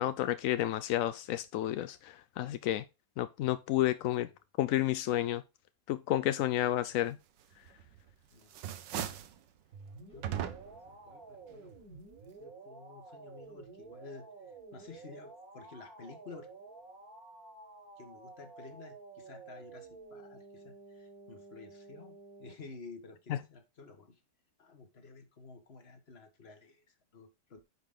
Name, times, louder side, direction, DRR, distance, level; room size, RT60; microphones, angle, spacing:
voice 1, 0.0-2.8 3.2-4.3 4.6-5.4 5.9-7.2 23.3-23.4, left 13 dB, 75° left, 0.7 m, -31 dB
sound 1, 7.7-8.1 8.4-9.4 10.2-10.9, right 10 dB, 85° right, 1.5 m, -38 dB
sound 2, 9.7-22.5, right 3 dB, 55° right, 2.0 m, -51 dB
voice 2, 10.1-11.8 12.2-16.5 18.0-24.2 24.6-27.6, left 4 dB, 35° left, 1.6 m, -52 dB
9.9 x 5.1 x 3.7 m
omnidirectional pair, 1.9 m